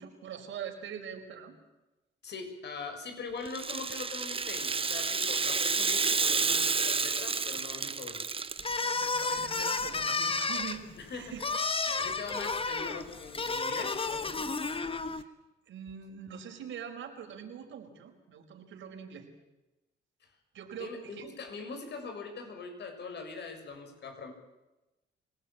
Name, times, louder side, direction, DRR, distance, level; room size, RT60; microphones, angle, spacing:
voice 1, 0.0-1.6 8.8-11.4 11.8-11.9 15.2-15.3 15.7-19.3 20.5-21.3, right 8 dB, 75° right, 3 dB, 5.1 m, -43 dB
voice 2, 2.2-8.2 11.0-11.3 12.0-14.5 20.2-20.3 20.8-24.3, left 4 dB, 60° left, 5 dB, 6.8 m, -42 dB
Rattle (instrument), 3.5-8.9, right 4 dB, 25° right, 1.1 m, -30 dB
sound 1, 8.6-15.2, left 3 dB, 25° left, 1.6 m, -32 dB
25.0 x 18.5 x 8.9 m, 1.0 s
cardioid pair, 90°, 20 cm